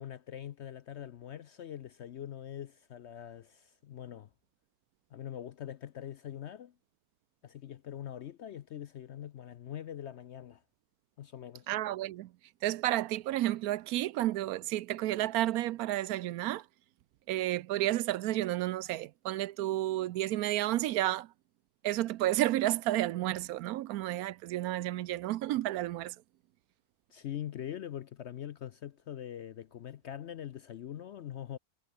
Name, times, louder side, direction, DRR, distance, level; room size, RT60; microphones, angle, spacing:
voice 1, 0.0-4.3 5.1-6.7 7.4-10.6 11.2-11.7 27.1-31.6, left 10 dB, 60° left, 0.7 m, -43 dB
voice 2, 11.7-12.3 12.6-16.6 17.3-21.3 21.8-26.1, right 15 dB, 75° right, 1.0 m, -31 dB
omnidirectional pair, 1.6 m